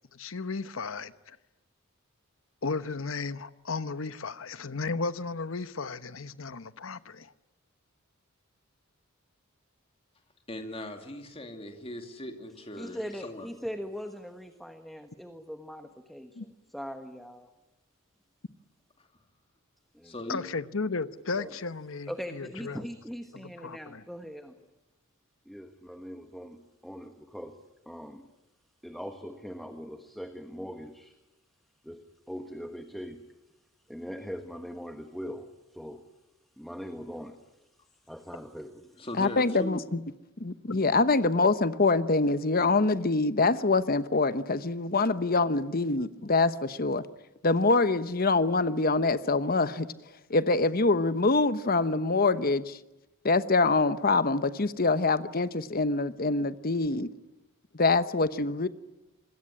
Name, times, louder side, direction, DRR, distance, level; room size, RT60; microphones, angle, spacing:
voice 1, 0.1-1.4 2.6-7.3 16.3-16.4 20.3-22.8 23.3-24.0 40.7-40.8, left 4 dB, 65° left, 1.0 m, -35 dB
voice 2, 10.5-13.5 20.0-20.4 39.0-39.8, left 1 dB, 25° left, 2.5 m, -39 dB
voice 3, 12.7-16.5 16.7-17.5 19.9-20.2 21.4-21.5 22.1-24.5 25.4-27.6 27.8-28.3 28.8-31.1 31.8-32.0 32.3-33.3 33.9-36.0 36.6-37.6 38.1-39.1, equal, ahead, 1.3 m, -41 dB
voice 4, 39.2-40.0 40.4-47.0 47.4-49.9 50.3-52.8 53.2-57.1 57.8-58.7, left 3 dB, 45° left, 1.0 m, -25 dB
26.0 x 21.5 x 9.9 m
head